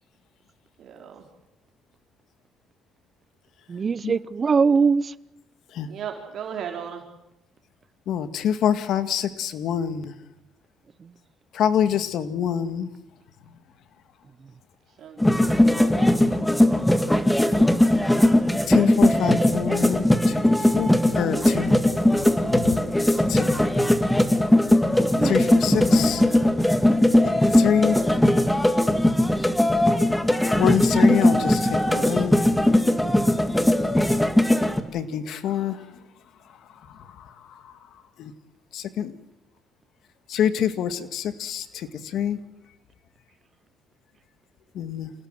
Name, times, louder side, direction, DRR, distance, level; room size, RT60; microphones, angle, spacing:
voice 1, 0.8-1.2 5.9-7.0 15.0-15.3 15.7-15.9 26.3-26.4, right 8 dB, 60° right, 3.6 m, -36 dB
voice 2, 3.7-5.1 16.1-16.4 25.0-25.3, right 5 dB, 35° right, 0.8 m, -22 dB
voice 3, 8.1-10.1 11.5-12.9 15.5-16.4 18.7-21.8 22.0-22.8 23.0-23.5 25.2-26.3 27.0-28.3 30.6-32.4 34.9-36.0 36.7-37.8 38.2-38.3 38.7-39.1 40.3-42.4 44.7-45.1, left 9 dB, 70° left, 1.9 m, -27 dB
sound 1, 15.2-34.8, left 1 dB, 5° left, 2.1 m, -19 dB
27.5 x 17.5 x 7.7 m
cardioid pair, 90°, 0 cm